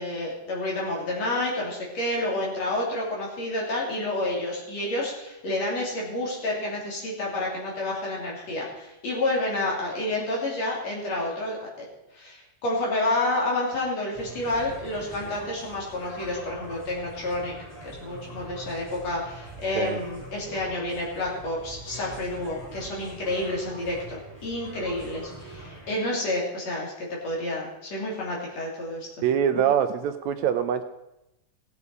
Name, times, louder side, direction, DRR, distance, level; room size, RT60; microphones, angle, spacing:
voice 1, 0.0-11.9 12.1-17.5 17.8-29.1, left 1 dB, 60° left, -3 dB, 4.3 m, -29 dB
sound 1, 14.1-25.9, right 2 dB, 5° right, 5.7 m, -43 dB
voice 2, 29.2-30.8, right 9 dB, 80° right, 9 dB, 1.8 m, -24 dB
18.5 x 8.3 x 4.8 m, 0.90 s
omnidirectional pair, 3.5 m